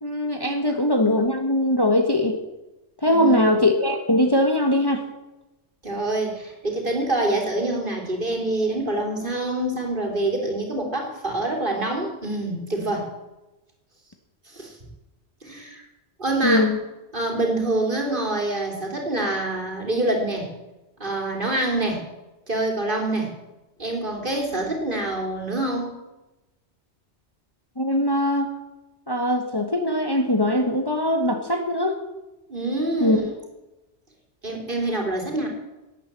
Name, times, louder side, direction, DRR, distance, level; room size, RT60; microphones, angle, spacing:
voice 1, 0.0-2.4 3.0-5.0 16.4-16.8 27.8-28.5 29.1-32.0 33.0-33.2, left 1 dB, 20° left, 4 dB, 1.3 m, -21 dB
voice 2, 3.1-3.5 5.8-13.1 14.5-14.7 15.4-15.8 16.2-16.7 17.1-20.5 21.0-22.0 22.5-23.3 23.8-25.9 32.5-33.3 34.4-35.5, right 2 dB, 45° right, 1 dB, 3.6 m, -26 dB
18.0 x 9.4 x 7.5 m, 1.0 s
omnidirectional pair, 1.2 m